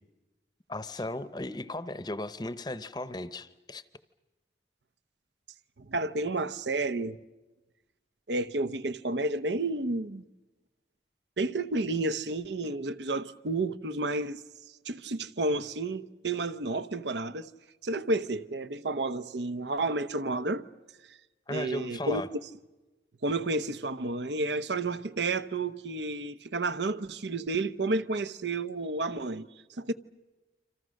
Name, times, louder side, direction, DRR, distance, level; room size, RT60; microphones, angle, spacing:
voice 1, 0.7-3.8 21.5-22.3, left 2 dB, 25° left, 0.8 m, -36 dB
voice 2, 5.8-7.2 8.3-10.2 11.4-14.4 14.8-17.5 17.8-20.7 21.1-21.2 21.5-22.2 23.2-29.5 29.8-29.9, right 2 dB, 85° right, 0.9 m, -31 dB
28.5 x 26.0 x 6.5 m
head